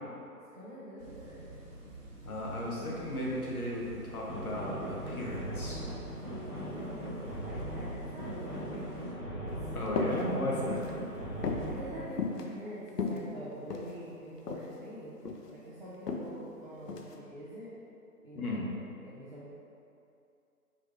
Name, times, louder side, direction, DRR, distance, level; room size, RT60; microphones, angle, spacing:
voice 1, 0.5-2.0 2.7-2.9 6.8-9.7 11.6-15.2 15.5-17.7 18.2-18.7 19.0-19.5, equal, 30° right, -11 dB, 0.6 m, -46 dB
sound 1, 1.0-9.1, right 1 dB, 80° right, 1.1 m, -49 dB
voice 2, 2.2-5.8 9.7-10.8 18.3-18.6, left 1 dB, 65° left, -4 dB, 1.2 m, -35 dB
sound 2, 4.3-12.1, equal, 10° left, 0.8 m, -39 dB
sound 3, 9.9-10.2 10.6-11.0 11.4-11.7 12.2-12.4 12.9-13.9 14.5-14.7 15.0-15.5 16.1-16.3 16.9-17.1, left 4 dB, 80° left, 0.7 m, -34 dB
4.8 x 3.0 x 3.4 m, 2.6 s
figure-of-eight pair, 160°, 47 cm